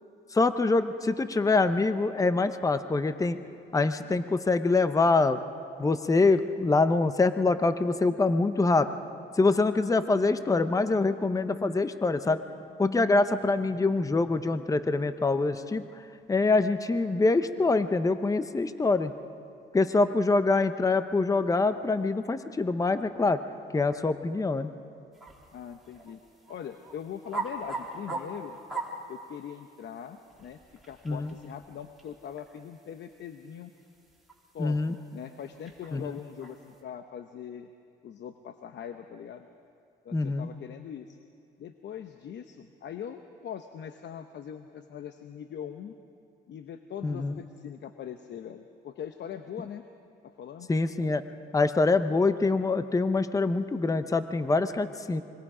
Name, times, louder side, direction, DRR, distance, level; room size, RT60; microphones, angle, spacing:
voice 1, 0.3-3.4 3.7-5.4 5.8-8.9 9.4-12.4 12.8-15.8 16.3-19.1 19.7-23.4 23.7-24.7 31.1-31.3 34.6-34.9 35.9-36.1 40.1-40.5 47.0-47.4 50.7-51.2 51.5-55.2, left 3 dB, 15° left, 11 dB, 0.8 m, -25 dB
sound 1, 25.1-36.8, right 3 dB, ahead, 3.7 m, -42 dB
voice 2, 25.5-26.2 26.5-28.6 29.1-30.6 30.8-33.7 34.5-37.7 38.0-39.5 40.0-41.2 41.6-46.0 46.5-49.8 50.2-50.7, left 8 dB, 65° left, 8 dB, 0.9 m, -41 dB
25.5 x 22.5 x 5.0 m, 2.5 s
cardioid pair, 90°, 20 cm